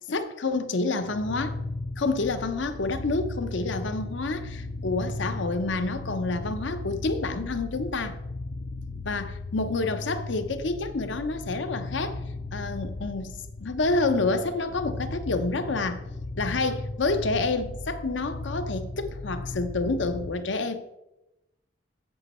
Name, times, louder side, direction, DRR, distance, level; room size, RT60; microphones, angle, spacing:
voice 1, 0.0-1.6 2.0-8.2 9.0-12.2 12.5-13.3 13.6-16.0 16.4-21.0, left 3 dB, 70° left, 0.7 m, -28 dB
sound 1, 1.0-20.3, left 2 dB, 40° left, 0.4 m, -36 dB
8.1 x 7.4 x 4.2 m
head